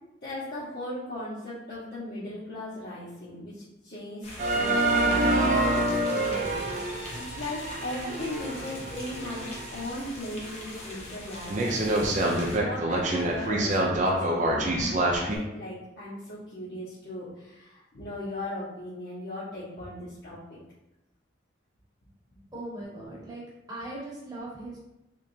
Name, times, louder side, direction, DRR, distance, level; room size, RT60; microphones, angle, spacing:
voice 1, 0.2-4.3 4.5-11.7 12.1-20.4, left 1 dB, 55° left, -13 dB, 1.3 m, -38 dB
sound 1, 4.2-12.6, left 1 dB, 35° left, 0.8 m, -41 dB
sound 2, 4.4-9.8 10.3-10.4 10.9-11.0 11.5-15.4, right 1 dB, 40° right, 0.5 m, -26 dB
voice 2, 22.5-23.4 23.7-24.8, right 1 dB, 20° right, -5 dB, 1.1 m, -39 dB
3.7 x 3.2 x 2.7 m, 0.90 s
head